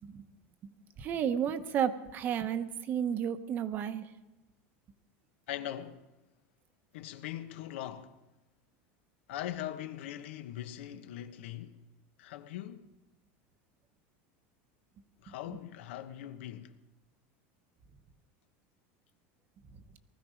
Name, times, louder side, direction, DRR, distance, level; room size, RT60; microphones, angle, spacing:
voice 1, 1.0-4.1 15.3-15.6, right 8 dB, 30° right, 0.9 m, -32 dB
voice 2, 5.5-6.0 6.9-8.1 9.3-11.8 12.2-12.9 15.2-16.7, left 12 dB, 85° left, 1.3 m, -41 dB
19.5 x 14.5 x 5.1 m
supercardioid pair, 165°, 6 cm